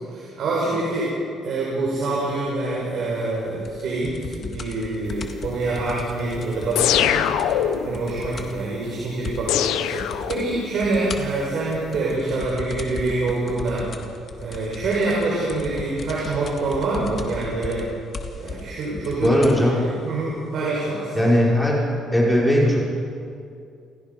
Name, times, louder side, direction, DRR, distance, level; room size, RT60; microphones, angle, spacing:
voice 1, 0.1-1.1 1.4-7.3 7.9-13.9 14.4-17.9 18.4-19.4 19.7-21.3, right 2 dB, 65° right, -5 dB, 5.4 m, -26 dB
sound 1, 3.6-8.7 8.9-9.0 9.2-9.7 10.0-10.4 10.8-19.6 20.4-20.5, left 4 dB, 40° left, 2.0 m, -36 dB
sound 2, 6.8-8.0 9.5-10.8, left 10 dB, 85° left, 1.0 m, -22 dB
voice 2, 19.2-19.8 21.1-21.9 22.1-22.8, equal, 10° left, -4 dB, 5.5 m, -18 dB
28.5 x 16.5 x 5.4 m, 2.4 s
cardioid pair, 105°, 0 cm